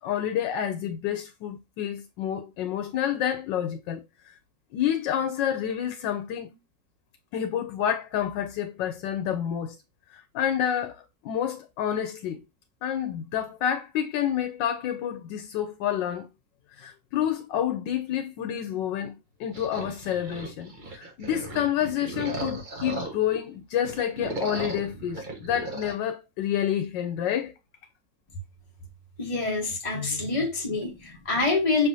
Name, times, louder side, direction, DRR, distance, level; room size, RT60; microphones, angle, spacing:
voice 1, 0.0-4.0 4.7-6.6 7.3-9.8 10.1-12.4 12.8-16.3 16.8-27.5 29.9-30.5, left 10 dB, 90° left, 1.3 m, -29 dB
sound 1, 19.5-23.4 23.8-26.0, right 2 dB, 35° right, 1.0 m, -36 dB
voice 2, 29.2-31.9, left 3 dB, 20° left, 1.4 m, -26 dB
6.0 x 3.4 x 2.6 m
omnidirectional pair, 1.9 m